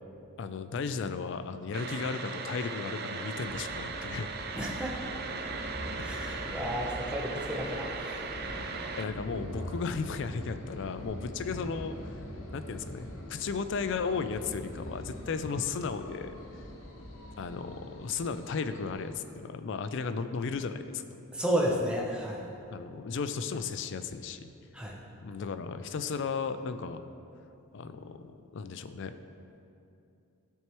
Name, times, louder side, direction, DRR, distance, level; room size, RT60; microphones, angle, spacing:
voice 1, 0.4-4.3 6.0-6.1 9.0-12.0 12.5-16.4 17.4-21.0 22.7-24.5 25.2-27.0 27.7-29.1, left 5 dB, 60° left, 10 dB, 0.4 m, -35 dB
sound 1, 1.7-9.0, right 4 dB, 45° right, 0.4 m, -38 dB
sound 2, 3.3-19.1, left 1 dB, 75° left, 1.0 m, -43 dB
voice 2, 4.6-5.0 6.0-8.3 21.3-22.5 24.7-25.0, equal, 5° right, -3 dB, 0.7 m, -32 dB
12.5 x 4.6 x 3.0 m, 2.6 s
head